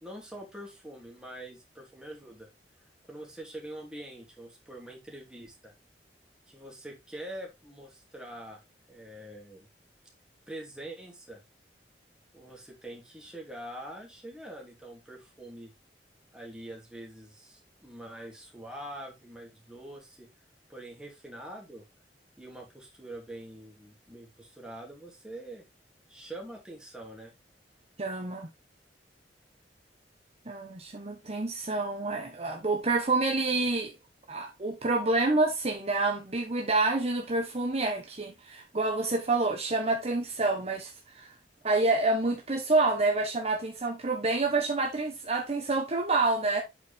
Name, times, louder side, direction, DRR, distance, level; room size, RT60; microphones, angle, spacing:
voice 1, 0.0-2.5 3.1-5.7 6.5-8.6 8.9-9.7 10.5-11.4 12.3-15.7 16.3-20.3 20.7-21.8 22.4-25.6 26.1-27.3, right 1 dB, 5° right, 2.6 m, -44 dB
voice 2, 28.0-28.5 30.5-33.9 34.3-41.3 41.6-46.6, right 3 dB, 40° right, 1.1 m, -28 dB
8.2 x 4.7 x 3.5 m
head